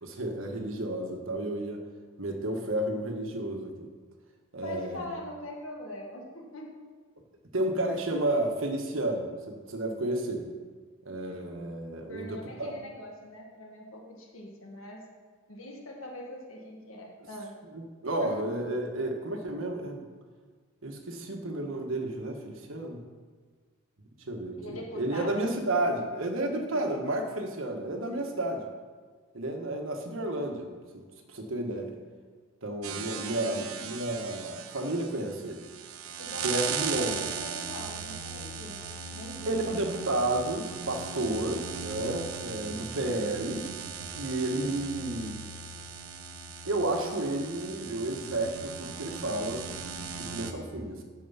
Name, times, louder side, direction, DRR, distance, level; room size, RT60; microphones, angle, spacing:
voice 1, 0.0-1.8 2.2-3.7 4.5-5.0 7.5-10.5 11.0-12.8 17.7-20.1 20.8-23.0 24.3-28.6 29.3-30.7 30.9-32.0 32.6-35.7 36.4-37.1 39.5-43.7 44.2-45.3 46.6-51.0, right 1 dB, 65° right, 3 dB, 1.3 m, -32 dB
voice 2, 4.6-6.7 11.3-11.5 12.1-15.1 15.5-17.5 18.2-18.5 24.6-25.4 25.8-25.9 33.0-33.4 36.2-38.8 39.1-40.0 41.2-41.4 42.7-43.0, left 1 dB, 75° left, 0 dB, 1.6 m, -42 dB
sound 1, 32.8-50.5, right 6 dB, 85° right, 0.8 m, -38 dB
9.3 x 6.8 x 5.6 m, 1.5 s
head